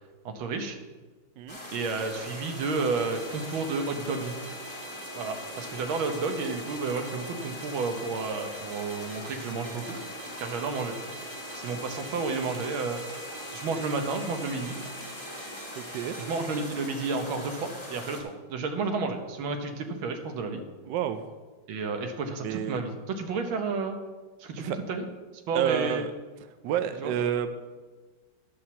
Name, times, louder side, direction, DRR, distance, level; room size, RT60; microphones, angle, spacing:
voice 1, 0.3-0.8 1.7-4.4 5.2-10.0 10.4-11.0 11.6-13.0 13.5-14.8 16.3-20.6 21.7-24.0 24.4-25.1 25.5-26.1 27.0-27.1, right 4 dB, 90° right, 5 dB, 1.8 m, -31 dB
sound 1, 1.5-18.2, left 1 dB, 20° left, 1.8 m, -42 dB
sound 2, 1.9-16.7, right 1 dB, 35° right, 1.0 m, -44 dB
voice 2, 15.8-16.2 20.9-21.2 22.4-22.8 24.6-24.8 25.5-26.1 26.6-27.5, right 9 dB, 70° right, 10 dB, 1.1 m, -29 dB
10.5 x 5.0 x 7.1 m, 1.3 s
omnidirectional pair, 2.2 m